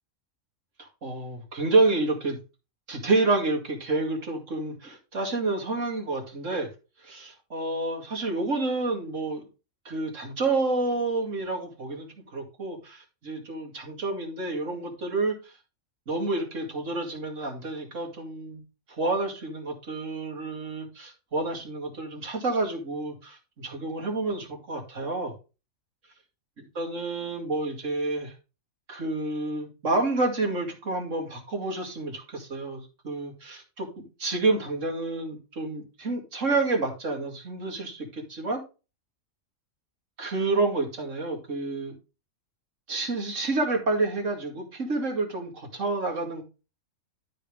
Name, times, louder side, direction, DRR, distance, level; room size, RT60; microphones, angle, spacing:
voice 1, 0.8-2.4 2.9-6.7 7.0-9.4 9.8-15.5 16.1-18.6 18.9-25.3 26.6-28.3 28.9-38.6 40.2-42.0 42.9-46.4, right 3 dB, 65° right, 1 dB, 2.6 m, -29 dB
12.5 x 5.3 x 3.5 m, 0.31 s
omnidirectional pair, 1.4 m